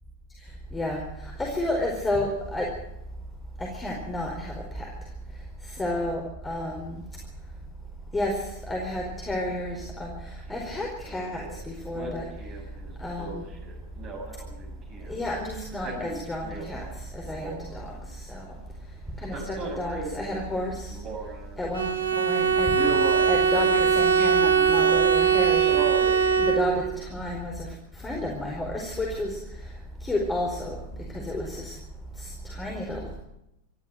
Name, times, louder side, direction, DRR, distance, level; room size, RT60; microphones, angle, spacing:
voice 1, 0.4-2.7 3.6-4.9 5.6-7.0 8.1-12.3 13.0-13.4 15.1-18.5 19.2-21.0 21.6-22.8 23.1-26.1 26.3-30.8 31.1-31.8 32.1-33.1, left 1 dB, 15° left, 0 dB, 4.7 m, -31 dB
Male speech man speaking, 10.5-10.7 11.0-11.6 11.9-15.2 15.6-17.0 17.2-18.1 19.2-21.6 22.0-22.3 22.7-25.1 25.6-26.3 26.8-26.9, right 3 dB, 30° right, 6.6 m, -36 dB
Bowed string instrument, 21.7-27.0, right 7 dB, 70° right, 1.6 m, -21 dB
25.5 x 14.5 x 7.8 m, 0.83 s
figure-of-eight pair, 90°, 0 cm